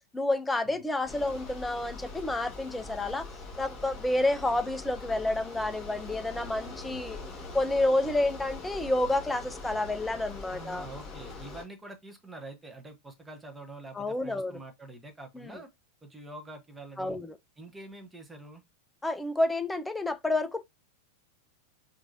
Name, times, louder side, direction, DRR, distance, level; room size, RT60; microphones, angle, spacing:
voice 1, 0.1-3.3 3.6-7.2 7.5-10.9 13.9-14.6 15.3-15.5 17.0-17.3 19.0-20.7, left 2 dB, 5° left, 0.4 m, -29 dB
Bicycle, 1.0-11.6, left 3 dB, 25° left, 2.4 m, -43 dB
voice 2, 10.5-15.7 16.0-17.2 17.6-18.6, right 2 dB, 10° right, 0.8 m, -46 dB
4.5 x 2.5 x 2.7 m
figure-of-eight pair, 90°, 0 cm